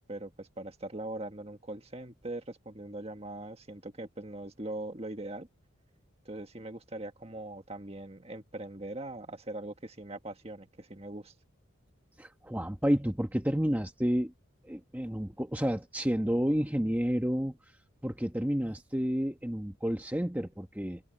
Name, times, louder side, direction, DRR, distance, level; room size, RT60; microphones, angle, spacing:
voice 1, 0.0-5.5 6.2-11.3, right 1 dB, 30° right, 1.7 m, -41 dB
voice 2, 12.2-14.3 14.6-17.6 18.0-21.0, equal, 10° right, 1.1 m, -30 dB
head